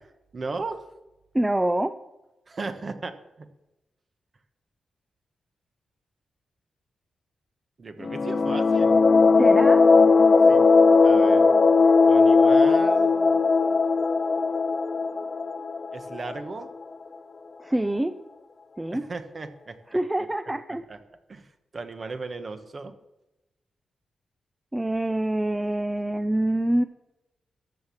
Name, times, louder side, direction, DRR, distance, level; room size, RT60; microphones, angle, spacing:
voice 1, 0.3-0.8 2.5-3.5 7.8-9.0 9.4-9.5 10.5-10.7 11.0-11.5 12.1-13.4 15.9-16.7 18.9-20.0 20.9-21.0 21.3-22.9, right 3 dB, 40° right, 8 dB, 1.2 m, -36 dB
voice 2, 1.3-2.0 9.4-9.9 17.6-18.2 18.8-19.0 19.9-20.8 24.7-26.8, right 1 dB, 10° right, 10 dB, 0.5 m, -25 dB
sound 1, 8.0-16.6, left 4 dB, 40° left, 0.5 m, -18 dB
14.0 x 6.3 x 7.3 m, 0.98 s
wide cardioid pair, 115°, 0 cm